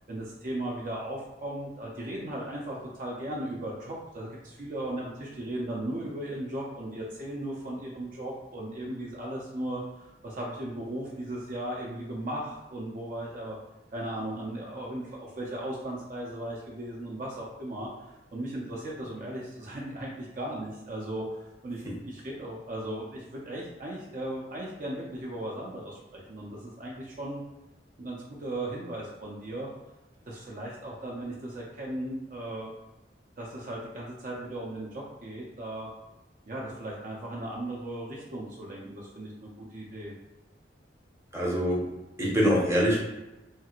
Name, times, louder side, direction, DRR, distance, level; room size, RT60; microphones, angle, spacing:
voice 1, 0.1-13.6 13.9-27.4 28.0-29.7 30.3-32.7 33.4-35.9 36.5-40.1, right 1 dB, 45° right, -3 dB, 0.5 m, -37 dB
voice 2, 41.3-41.8 42.2-43.0, equal, 15° right, -5 dB, 0.7 m, -24 dB
3.2 x 2.4 x 2.9 m, 1.0 s
head